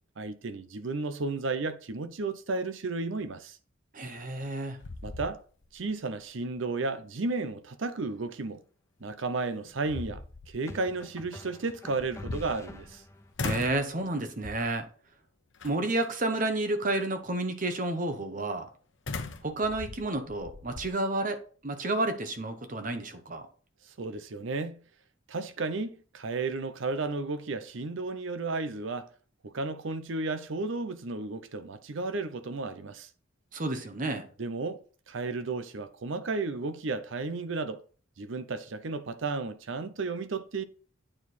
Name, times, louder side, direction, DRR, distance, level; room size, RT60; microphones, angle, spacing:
voice 1, 0.2-3.6 5.0-5.4 5.7-8.6 9.0-13.0 23.9-24.8 25.3-29.1 29.4-33.1 34.4-37.8 38.2-40.6, right 3 dB, 70° right, 0.6 m, -33 dB
voice 2, 3.9-4.8 13.4-14.9 15.6-18.7 19.4-23.4 33.5-34.3, right 2 dB, 40° right, 1.0 m, -31 dB
sound 1, 4.2-4.5 4.8-5.8 6.2-6.3 9.0-9.1 9.6-10.6 11.9-13.0 13.4-13.9 14.4-14.8 15.6-16.1 19.1-20.9, left 3 dB, 65° left, 0.8 m, -39 dB
sound 2, 8.0-8.3 10.7-13.3, left 1 dB, 15° left, 0.6 m, -47 dB
8.8 x 4.7 x 4.1 m
head